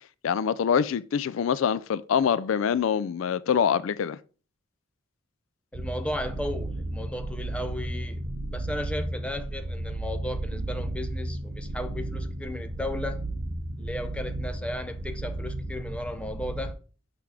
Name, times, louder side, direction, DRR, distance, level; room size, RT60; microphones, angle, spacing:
voice 1, 0.2-4.2, left 7 dB, 75° left, 0.4 m, -25 dB
voice 2, 5.7-8.2 8.5-13.2 13.8-16.8, left 1 dB, 5° left, 0.6 m, -35 dB
sound 1, 5.7-16.7, right 1 dB, 80° right, 1.6 m, -34 dB
5.8 x 5.8 x 4.8 m
head